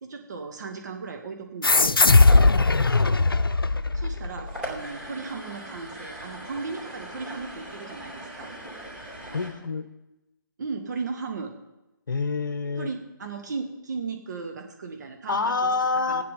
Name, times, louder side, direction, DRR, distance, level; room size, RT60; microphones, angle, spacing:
voice 1, 0.0-2.0 3.9-8.5 10.6-11.5 12.8-15.7 16.1-16.2, right 4 dB, 55° right, 3 dB, 1.7 m, -36 dB
sound 1, 1.6-4.7, left 3 dB, 85° left, 0.6 m, -19 dB
sound 2, 2.3-9.5, equal, 5° right, 3.9 m, -40 dB
voice 2, 2.8-3.2 9.3-9.9 12.1-12.9 15.3-16.2, left 4 dB, 60° left, 10 dB, 1.1 m, -27 dB
16.0 x 9.5 x 5.6 m, 0.99 s
figure-of-eight pair, 140°, 12 cm